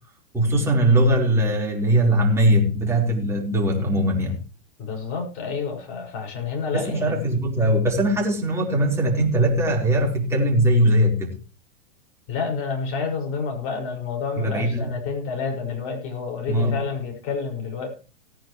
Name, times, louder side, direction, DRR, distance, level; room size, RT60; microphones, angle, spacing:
voice 1, 0.3-4.4 6.7-11.3 14.4-14.9 16.5-16.8, right 1 dB, 5° right, -2 dB, 4.3 m, -20 dB
voice 2, 4.8-7.2 12.3-17.9, left 5 dB, 35° left, 2 dB, 5.8 m, -29 dB
18.5 x 10.0 x 3.2 m, 0.34 s
hypercardioid pair, 125°, 38 cm